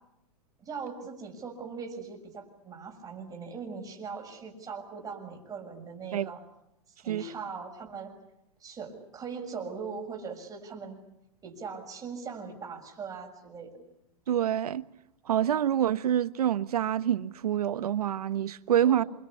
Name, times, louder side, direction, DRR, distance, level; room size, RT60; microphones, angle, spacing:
voice 1, 0.6-6.4 7.0-8.1 8.6-11.0 11.4-13.8 18.9-19.1, right 5 dB, 20° right, 6.6 m, -40 dB
voice 2, 14.3-14.8 15.3-19.0, right 10 dB, 80° right, 1.2 m, -26 dB
28.0 x 24.5 x 8.5 m
hypercardioid pair, 130°, 19 cm